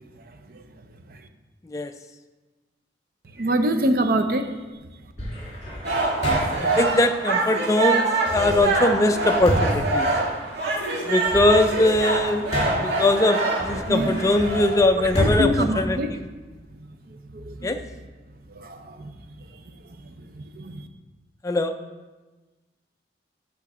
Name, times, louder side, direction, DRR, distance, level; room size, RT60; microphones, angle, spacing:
voice 1, 3.3-4.5 13.9-14.2 15.0-16.2 17.1-17.7 18.5-19.1 19.5-19.6 20.2-20.9, right 1 dB, 55° right, 7 dB, 0.6 m, -26 dB
sound 1, 5.2-6.8 8.3-10.7 11.1-13.0 13.6-16.6, equal, 35° left, 2.2 m, -30 dB
sound 2, 5.8-14.8, right 3 dB, 70° right, 1.9 m, -25 dB
voice 2, 6.6-10.1 11.0-12.5 12.8-16.0 17.6-17.8 21.4-21.7, left 2 dB, 20° left, 7 dB, 0.3 m, -21 dB
8.4 x 3.9 x 6.0 m, 1.2 s
head